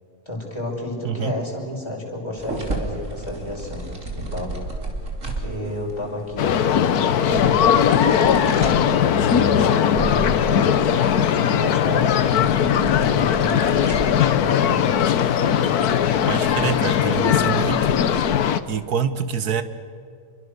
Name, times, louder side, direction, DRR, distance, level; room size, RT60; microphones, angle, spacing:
voice 1, 0.3-3.9 4.1-4.5 5.2-6.8 7.2-8.9 9.2-10.8 11.1-14.7, left 1 dB, 15° left, -3 dB, 6.1 m, -31 dB
sound 1, 2.4-18.2, right 2 dB, 50° right, 3.5 m, -34 dB
sound 2, 6.4-18.6, left 9 dB, 75° left, 1.4 m, -19 dB
voice 2, 16.3-18.0 18.7-19.6, right 7 dB, 75° right, 11 dB, 1.8 m, -26 dB
27.5 x 23.0 x 6.8 m, 2.3 s
omnidirectional pair, 1.7 m